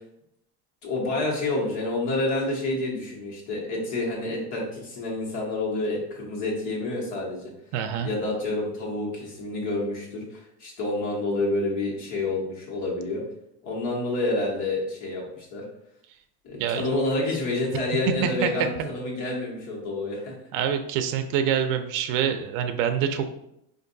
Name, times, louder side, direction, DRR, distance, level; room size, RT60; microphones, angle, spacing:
voice 1, 0.8-7.5 8.0-13.2 13.6-15.6 16.4-20.3, left 2 dB, 65° left, -3 dB, 1.3 m, -28 dB
voice 2, 7.7-8.1 16.6-16.8 18.2-18.5 20.5-23.3, right 8 dB, 75° right, 7 dB, 0.5 m, -25 dB
4.5 x 2.6 x 2.6 m, 0.79 s
cardioid pair, 175°, 33 cm